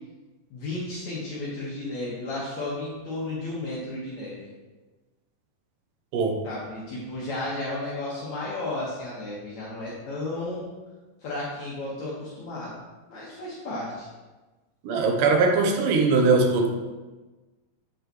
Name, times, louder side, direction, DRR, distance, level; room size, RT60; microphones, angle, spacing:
voice 1, 0.5-4.4 6.4-10.7 11.2-12.7 13.1-14.1, left 2 dB, 60° left, -7 dB, 2.7 m, -33 dB
voice 2, 14.9-16.7, right 3 dB, 80° right, 3 dB, 2.5 m, -21 dB
8.1 x 7.7 x 3.1 m, 1.2 s
omnidirectional pair, 3.8 m